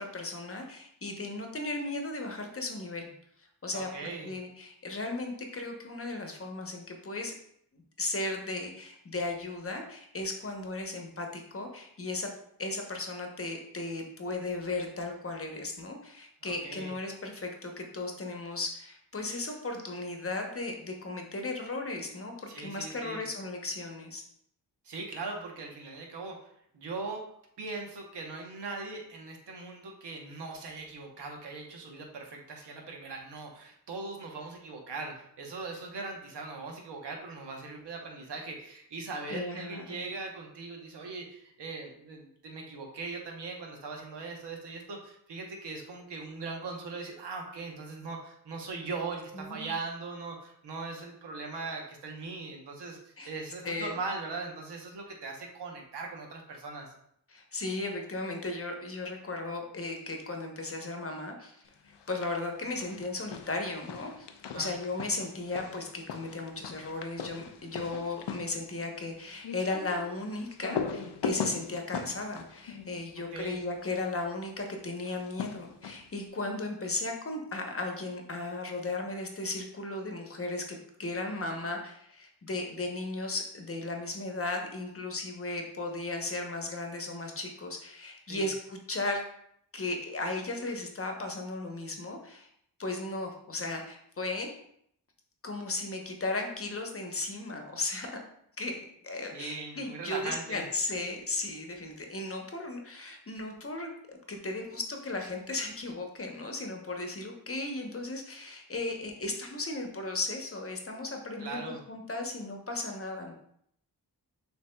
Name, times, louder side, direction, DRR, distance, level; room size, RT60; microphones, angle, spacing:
voice 1, 0.0-3.1 3.6-7.3 7.7-12.3 12.6-24.2 39.3-40.1 49.3-49.7 53.2-53.3 53.6-54.0 57.3-61.6 62.1-64.3 64.5-89.2 89.7-92.5 92.8-94.5 95.4-98.1 98.6-113.3, left 2 dB, 35° left, 3 dB, 0.8 m, -36 dB
voice 2, 3.7-4.3 16.4-16.9 22.5-23.2 24.8-27.2 27.6-56.9 64.5-64.7 73.3-73.6 88.3-88.5 99.3-100.6 111.4-111.8, right 3 dB, 85° right, 1 dB, 1.0 m, -40 dB
sound 1, 61.9-62.5 62.8-73.8 75.0-76.2, left 7 dB, 85° left, 0.5 m, -40 dB
6.8 x 2.8 x 2.2 m, 0.70 s
cardioid pair, 70°, 40 cm